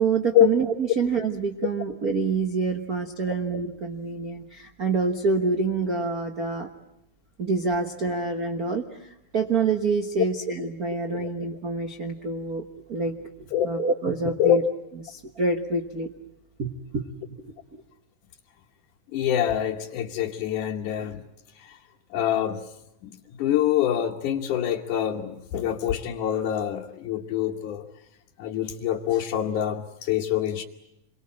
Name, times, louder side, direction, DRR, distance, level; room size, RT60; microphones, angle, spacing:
voice 1, 0.0-6.7 7.4-12.6 12.9-13.1 13.4-14.6 15.1-16.1 16.6-17.8, right 4 dB, 85° right, 6 dB, 0.8 m, -27 dB
voice 2, 14.3-14.6 19.1-21.2 21.6-21.8 22.1-22.7 23.0-27.9 28.4-30.6, left 11 dB, 70° left, -1 dB, 2.5 m, -25 dB
27.0 x 23.0 x 8.7 m, 0.83 s
omnidirectional pair, 4.0 m